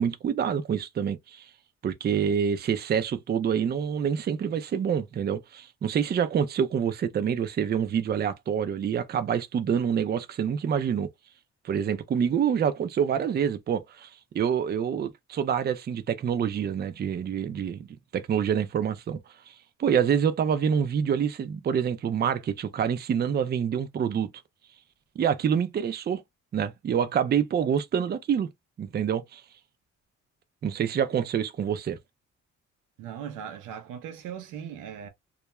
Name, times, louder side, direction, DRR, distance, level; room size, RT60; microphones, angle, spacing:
voice 1, 0.0-1.4 1.8-11.1 11.6-14.1 14.3-17.9 18.1-19.2 19.5-19.6 19.8-24.3 25.2-26.2 26.5-28.5 28.8-29.4 30.6-32.0, right 8 dB, 35° right, 0.4 m, -26 dB
voice 2, 33.0-35.1, right 8 dB, 90° right, 0.6 m, -39 dB
2.3 x 2.1 x 2.9 m
cardioid pair, 90°, 30 cm